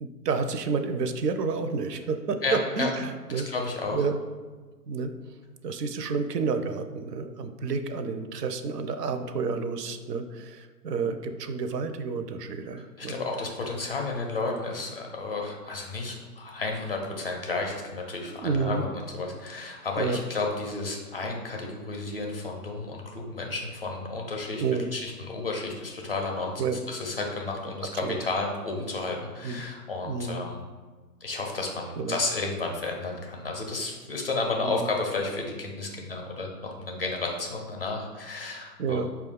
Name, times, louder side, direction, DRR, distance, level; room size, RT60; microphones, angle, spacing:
voice 1, 0.0-3.5 3.9-4.2 4.9-5.1 5.6-13.2 18.3-18.9 20.0-20.2 24.6-24.9 26.6-26.8 28.0-28.2 29.4-29.6 30.0-30.5 32.0-32.2 34.6-34.9 38.8-39.1, right 5 dB, 75° right, 8 dB, 0.6 m, -30 dB
voice 2, 2.4-2.9 3.3-4.0 12.7-26.6 26.9-30.6 31.2-39.0, left 3 dB, 40° left, 1 dB, 0.4 m, -32 dB
4.8 x 2.3 x 3.5 m, 1.4 s
hypercardioid pair, 145°, 49 cm